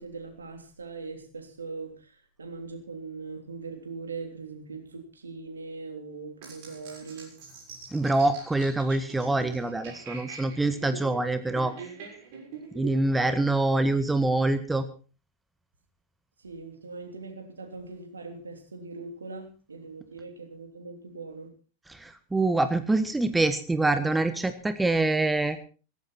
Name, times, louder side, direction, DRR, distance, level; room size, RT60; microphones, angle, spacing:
voice 1, 0.0-7.4 13.1-13.6 16.4-21.5, right 4 dB, 75° right, 6 dB, 3.3 m, -41 dB
sound 1, 6.4-13.4, right 6 dB, 50° right, 6.5 m, -44 dB
voice 2, 7.9-11.7 12.7-14.8 21.9-25.6, right 2 dB, 10° right, 11 dB, 1.4 m, -25 dB
17.5 x 15.0 x 4.4 m, 0.36 s
figure-of-eight pair, 90°, 0 cm